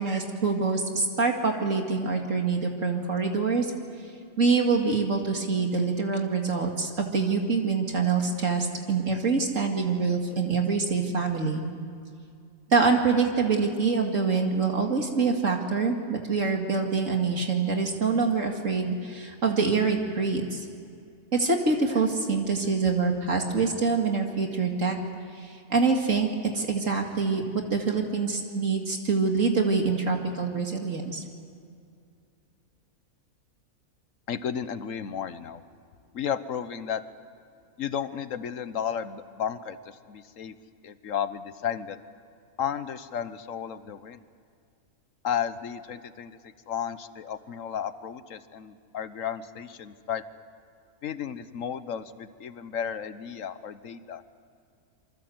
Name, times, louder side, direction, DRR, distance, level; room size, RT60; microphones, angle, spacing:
voice 1, 0.0-3.7 4.4-11.6 12.7-20.6 21.3-25.0 25.4-31.2, right 4 dB, 60° right, 2 dB, 2.5 m, -25 dB
voice 2, 34.3-35.6 36.1-37.0 37.8-40.5 40.8-42.0 42.6-44.2 45.2-46.4 46.7-50.2 51.0-54.2, left 8 dB, 65° left, 12 dB, 1.4 m, -33 dB
27.0 x 24.5 x 7.9 m, 2.4 s
omnidirectional pair, 1.5 m